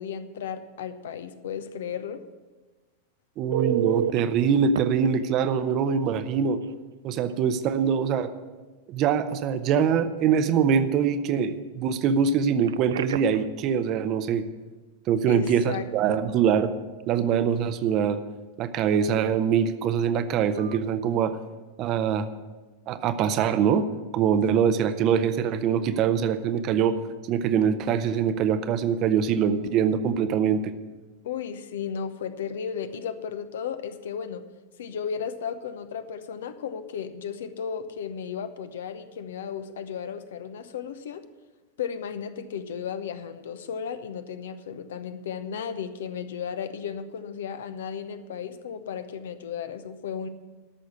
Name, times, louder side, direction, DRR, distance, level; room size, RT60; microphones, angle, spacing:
voice 1, 0.0-2.2 15.3-16.3 31.2-34.4 34.8-41.2 41.8-50.3, left 7 dB, 60° left, 11 dB, 0.8 m, -34 dB
voice 2, 3.4-6.6 7.0-8.3 8.9-14.4 15.1-16.7 17.1-18.2 18.6-21.4 21.8-22.3 22.9-23.8 24.1-27.0 27.3-30.7, right 7 dB, 35° right, 11 dB, 0.8 m, -23 dB
Telephone, 3.5-4.2 4.7-4.8 6.6-6.7 7.2-7.3 12.6-13.5 20.6-20.8, right 11 dB, 60° right, 0.4 m, -29 dB
13.0 x 6.4 x 8.2 m, 1.2 s
figure-of-eight pair, 90°, 0 cm